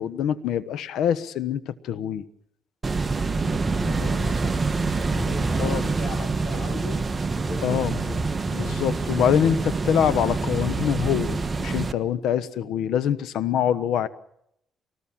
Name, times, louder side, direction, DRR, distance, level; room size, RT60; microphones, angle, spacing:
voice 1, 0.0-2.2 5.6-5.9 7.6-8.0 8.5-14.1, left 9 dB, 85° left, 16 dB, 1.2 m, -25 dB
sound 1, 2.8-11.9, right 3 dB, 30° right, 1.3 m, -26 dB
voice 2, 3.2-7.0 7.4-8.3, left 4 dB, 50° left, 4 dB, 4.8 m, -38 dB
24.5 x 19.0 x 7.4 m, 0.76 s
cardioid pair, 90°, 0 cm